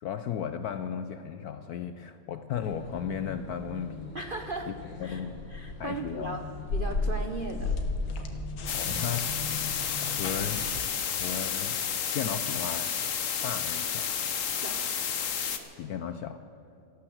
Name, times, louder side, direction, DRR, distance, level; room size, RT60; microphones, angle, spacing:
voice 1, 0.0-4.1 4.7-4.8 5.0-5.4 5.8-6.4 8.7-9.6 10.0-10.6 11.1-11.8 12.1-13.0 13.4-14.2 15.8-16.4, left 8 dB, 75° left, 10 dB, 0.9 m, -35 dB
sound 1, 2.5-10.8, left 3 dB, 90° left, 2.3 m, -35 dB
voice 2, 4.1-4.7 5.0-5.2 5.5-6.4 6.7-7.7 14.5-14.9, right 3 dB, 80° right, 5 dB, 0.4 m, -37 dB
sound 2, 8.7-15.6, left 7 dB, 50° left, 1.2 m, -31 dB
14.5 x 12.0 x 7.8 m, 2.9 s
omnidirectional pair, 2.2 m